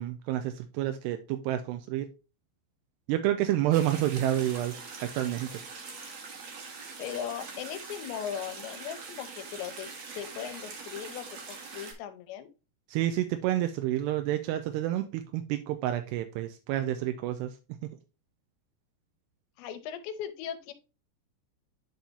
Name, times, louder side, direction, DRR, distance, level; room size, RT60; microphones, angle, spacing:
voice 1, 0.0-2.1 3.1-4.7 5.0-5.5 12.9-17.6, right 13 dB, 85° right, 7 dB, 2.5 m, -29 dB
sound 1, 3.7-11.9, right 4 dB, 55° right, 2.0 m, -43 dB
voice 2, 7.0-9.9 10.2-12.5 19.6-20.7, left 9 dB, 85° left, 10 dB, 3.0 m, -38 dB
10.5 x 4.5 x 2.7 m, 0.31 s
omnidirectional pair, 5.2 m